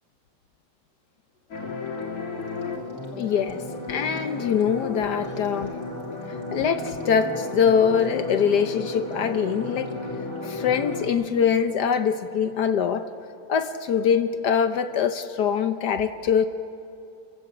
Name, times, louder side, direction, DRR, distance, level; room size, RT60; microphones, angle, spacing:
sound 1, 1.5-11.1, left 3 dB, 45° left, 2.9 m, -33 dB
voice 1, 3.2-3.6 3.9-5.8 6.5-9.9 10.4-13.1 13.5-16.5, left 7 dB, 65° left, 9 dB, 1.2 m, -23 dB
29.5 x 16.0 x 7.7 m, 2.6 s
omnidirectional pair, 2.2 m